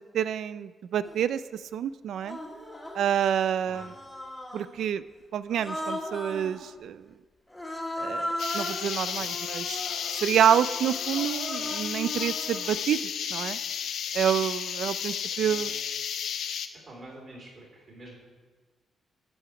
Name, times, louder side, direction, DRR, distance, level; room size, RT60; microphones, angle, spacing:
voice 1, 0.0-2.4 2.9-3.9 4.5-5.0 5.3-7.1 8.0-9.8 10.2-13.0 13.3-13.6 14.1-15.7, right 9 dB, 70° right, 15 dB, 0.3 m, -28 dB
Human voice, 1.0-1.2 2.2-3.1 3.7-4.8 5.5-6.6 7.5-12.8, left 1 dB, 5° left, 1.4 m, -37 dB
sound 1, 8.4-16.7, left 8 dB, 70° left, 0.5 m, -33 dB
voice 2, 14.1-14.6 14.8-15.0 15.3-15.7 16.9-18.2, right 2 dB, 35° right, -3 dB, 3.4 m, -48 dB
12.5 x 5.0 x 6.0 m, 1.4 s
wide cardioid pair, 165°, 0 cm